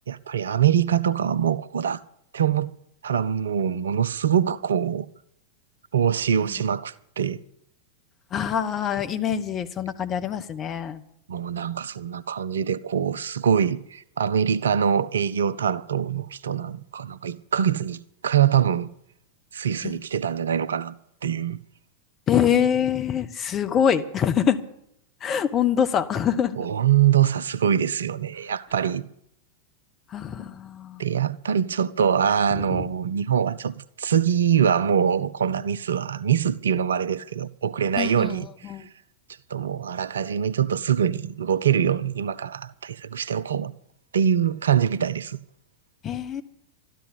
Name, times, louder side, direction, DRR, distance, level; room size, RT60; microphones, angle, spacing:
voice 1, 0.1-2.0 2.3-2.7 3.0-5.1 5.9-7.4 11.3-18.9 19.5-21.0 21.2-21.6 26.6-29.1 31.0-38.5 39.5-43.7 44.1-45.4, right 8 dB, 65° right, 0.5 m, -24 dB
voice 2, 8.3-11.0 19.8-20.0 22.3-24.6 25.2-26.6 30.1-31.0 32.5-32.8 38.0-38.9 46.0-46.4, left 8 dB, 30° left, 1.1 m, -25 dB
13.0 x 11.5 x 8.2 m
figure-of-eight pair, 90°, 0 cm